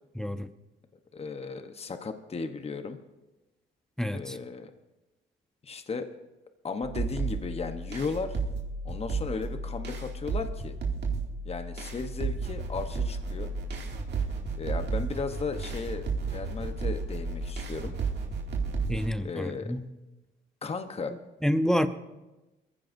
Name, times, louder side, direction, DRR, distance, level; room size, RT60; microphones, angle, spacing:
voice 1, 0.2-0.5 4.0-4.4 18.9-19.8 21.4-21.9, equal, 5° left, 0.8 m, -28 dB
voice 2, 1.1-3.0 4.1-4.7 5.6-6.1 6.6-8.4 8.8-10.7 11.4-13.5 14.5-18.0 19.2-19.7 20.6-21.1, left 4 dB, 30° left, 1.0 m, -35 dB
sound 1, 6.8-19.2, right 4 dB, 60° right, 2.4 m, -33 dB
22.0 x 15.0 x 2.7 m
cardioid pair, 90°, 20 cm